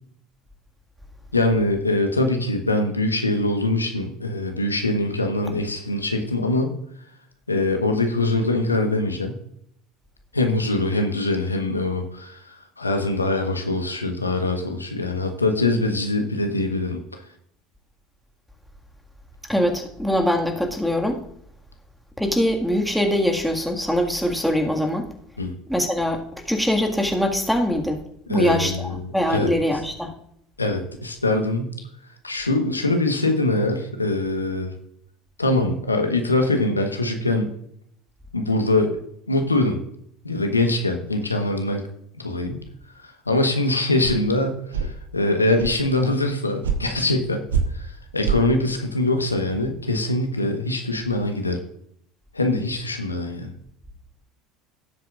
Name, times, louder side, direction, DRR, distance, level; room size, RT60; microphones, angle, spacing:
voice 1, 1.3-6.7 7.5-9.4 10.3-17.2 25.4-25.5 28.3-29.5 30.6-31.7 32.2-34.7 35.4-37.5 38.3-39.0 39.3-39.8 40.2-41.8 42.2-42.6 43.0-47.4 47.7-51.6 52.3-53.5, left 2 dB, 90° left, 5 dB, 1.2 m, -23 dB
voice 2, 19.5-21.2 22.2-25.1 25.7-28.0 28.3-30.1, equal, ahead, 1 dB, 1.9 m, -23 dB
sound 1, 44.0-44.1 44.7-44.9 45.6-45.8 46.6-46.8 47.5-47.6 48.2-48.4, right 7 dB, 75° right, 1.1 m, -23 dB
17.5 x 7.7 x 2.5 m, 0.71 s
figure-of-eight pair, 70°, 0 cm